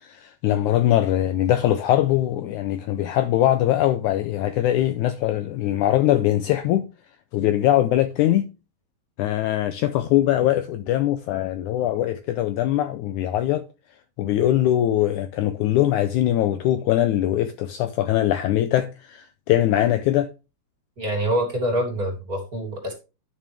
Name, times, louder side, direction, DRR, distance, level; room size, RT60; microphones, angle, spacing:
voice 1, 0.0-6.9 7.3-8.5 9.2-13.6 14.2-20.3, left 13 dB, 80° left, 1.8 m, -22 dB
voice 2, 21.0-22.9, right 1 dB, 30° right, 2.6 m, -25 dB
11.0 x 6.2 x 3.4 m
omnidirectional pair, 3.9 m